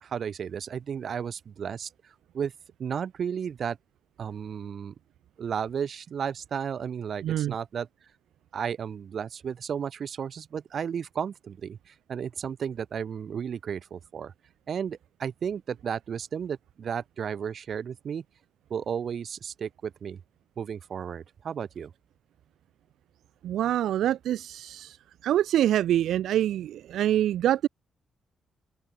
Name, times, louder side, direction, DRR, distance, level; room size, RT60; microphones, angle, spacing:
voice 1, 0.0-2.5 2.8-3.8 4.2-4.9 5.4-7.9 8.5-14.3 14.7-18.2 18.7-20.2 20.6-21.9, right 7 dB, 45° right, 0.7 m, -33 dB
voice 2, 7.2-7.5 23.4-25.0 25.2-27.7, right 12 dB, 90° right, 0.3 m, -25 dB
open air
cardioid pair, 155°, 0 cm